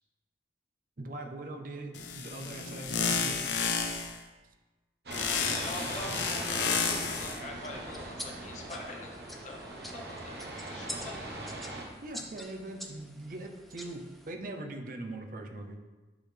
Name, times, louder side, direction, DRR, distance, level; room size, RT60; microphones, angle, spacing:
voice 1, 1.0-3.5 12.0-15.8, right 2 dB, 50° right, 4 dB, 0.6 m, -41 dB
sound 1, 1.9-4.2 5.1-7.4, left 6 dB, 90° left, 0.6 m, -31 dB
sound 2, 5.1-11.9, right 2 dB, 65° right, 1.0 m, -40 dB
voice 2, 5.3-10.4 10.7-11.3, left 2 dB, 40° left, 1 dB, 0.9 m, -44 dB
sound 3, 7.4-14.3, equal, ahead, 0.4 m, -47 dB
8.9 x 4.0 x 3.4 m, 1.2 s
head